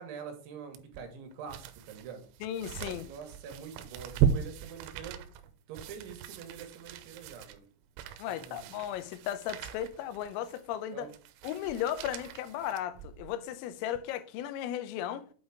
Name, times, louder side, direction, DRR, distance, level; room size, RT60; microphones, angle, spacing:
voice 1, 0.0-2.2 2.8-5.2 5.7-7.7 8.3-8.8 10.9-11.1, right 6 dB, 70° right, 3.5 m, -45 dB
sound 1, 0.7-13.4 13.9-14.0, right 8 dB, 85° right, 3.4 m, -37 dB
voice 2, 2.4-3.1 8.2-11.1 11.4-15.3, left 11 dB, 85° left, 3.4 m, -35 dB
8.5 x 4.0 x 4.8 m
omnidirectional pair, 5.9 m